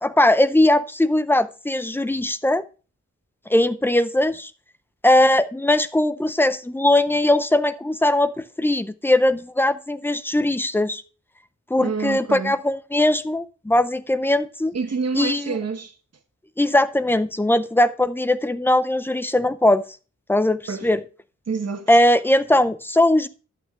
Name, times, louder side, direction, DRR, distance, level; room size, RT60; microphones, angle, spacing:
voice 1, 0.0-2.7 3.5-4.5 5.0-11.0 11.7-14.8 15.1-15.6 16.6-19.8 20.3-21.0 21.9-23.3, left 1 dB, 10° left, 0.4 m, -20 dB
voice 2, 11.8-12.5 14.7-15.9 20.7-20.9 21.5-21.9, right 5 dB, 60° right, 1.2 m, -27 dB
11.5 x 8.4 x 2.4 m
wide cardioid pair, 115°, 29 cm